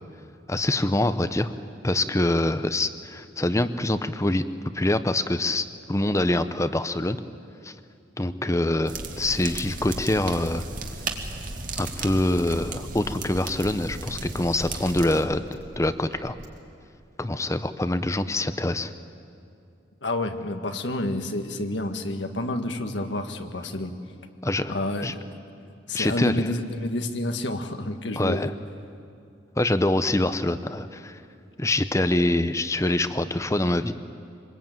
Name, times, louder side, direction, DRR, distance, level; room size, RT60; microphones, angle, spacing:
voice 1, 0.5-1.5 1.8-4.4 4.7-7.2 7.6-7.7 8.2-10.6 11.8-15.4 15.8-16.4 17.2-18.9 24.4-24.7 25.0-25.1 25.9-26.5 28.2-28.5 29.6-31.2 31.6-33.9, left 1 dB, 15° left, 11 dB, 0.7 m, -25 dB
sound 1, 8.9-15.2, right 3 dB, 50° right, 2.0 m, -35 dB
sound 2, 11.2-16.6, equal, 85° right, 4.5 m, -46 dB
voice 2, 20.0-23.9 24.7-25.2 25.9-28.5, left 1 dB, 80° left, 6 dB, 1.6 m, -29 dB
25.0 x 20.5 x 9.2 m, 2.5 s
head